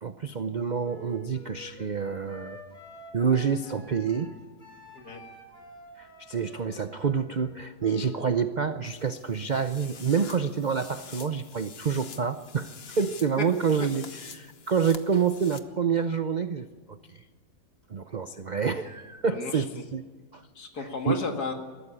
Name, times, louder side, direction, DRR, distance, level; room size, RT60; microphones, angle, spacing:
voice 1, 0.0-2.6 3.1-4.3 6.0-14.0 14.3-17.2 17.9-20.0 20.3-20.4 20.8-21.2, right 6 dB, 70° right, 10 dB, 0.4 m, -28 dB
Wind instrument woodwind instrument, 0.8-8.3, equal, 25° left, 4.4 m, -48 dB
voice 2, 4.9-5.3 13.4-13.5 19.2-19.8 20.5-21.5, left 3 dB, 65° left, 4 dB, 2.6 m, -33 dB
sound 1, 8.8-15.6, left 6 dB, 40° left, 1.1 m, -47 dB
21.5 x 14.0 x 9.9 m, 1.5 s
omnidirectional pair, 1.8 m